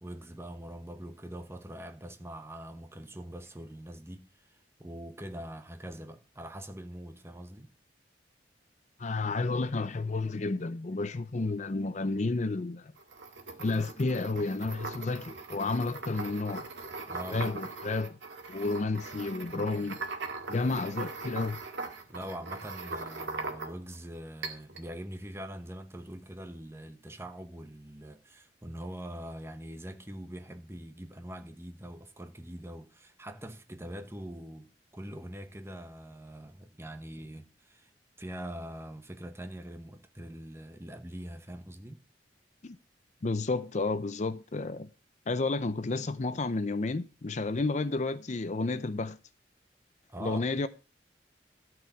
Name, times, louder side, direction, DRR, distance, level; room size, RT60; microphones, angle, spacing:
voice 1, 0.0-7.7 17.1-17.5 22.1-37.9 38.2-42.0 50.1-50.5, right 1 dB, 15° right, 1.1 m, -43 dB
voice 2, 9.0-12.9 13.6-16.7 17.3-18.2 18.5-20.0 20.5-21.6 42.6-42.8 43.2-44.9 45.3-49.2 50.2-50.7, left 3 dB, 40° left, 0.5 m, -31 dB
sound 1, 13.0-24.0 24.4-24.9, right 3 dB, 90° right, 1.9 m, -40 dB
12.5 x 4.9 x 7.1 m
head